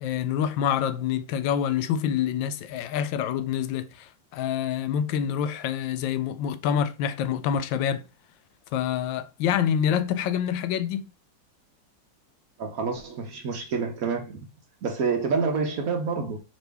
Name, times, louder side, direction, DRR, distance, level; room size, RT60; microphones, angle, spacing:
voice 1, 0.0-8.1 8.7-11.1, left 9 dB, 85° left, 1.3 m, -26 dB
voice 2, 12.6-14.4 14.8-16.4, right 5 dB, 60° right, 1.1 m, -28 dB
5.1 x 3.1 x 3.3 m
omnidirectional pair, 2.0 m